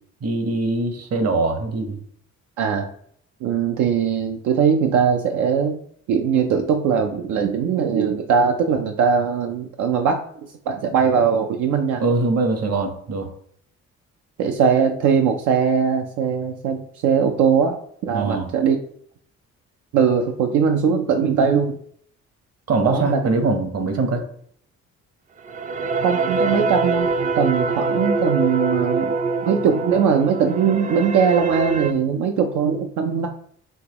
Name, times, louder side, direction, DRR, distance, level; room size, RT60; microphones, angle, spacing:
voice 1, 0.2-2.0 12.0-13.3 18.1-18.5 22.7-24.2, right 3 dB, 55° right, 6 dB, 1.0 m, -22 dB
voice 2, 2.6-2.9 3.4-5.8 6.1-10.2 10.7-12.0 14.4-18.8 19.9-21.8 22.8-23.2 26.0-27.1 27.4-29.1 29.4-33.3, right 6 dB, 85° right, 4 dB, 0.5 m, -20 dB
sound 1, 25.4-31.9, right 3 dB, 25° right, 0.4 m, -24 dB
5.5 x 3.0 x 2.9 m, 0.63 s
cardioid pair, 90°, 30 cm